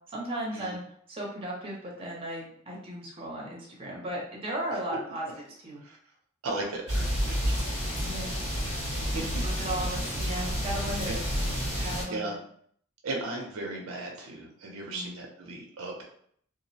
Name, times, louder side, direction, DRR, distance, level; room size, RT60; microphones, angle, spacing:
voice 1, 0.1-0.8 1.1-5.3 5.6-5.8 8.0-8.3 9.1-11.2 11.8-12.4 14.9-15.2, right 1 dB, 25° right, -3 dB, 0.7 m, -36 dB
voice 2, 6.4-7.7 8.9-9.3 9.9-10.0 11.1-11.2 11.7-12.3 13.0-16.1, right 2 dB, 85° right, 0 dB, 0.5 m, -37 dB
sound 1, 6.9-12.0, equal, 85° left, 1.3 m, -30 dB
2.3 x 2.0 x 2.7 m, 0.63 s
head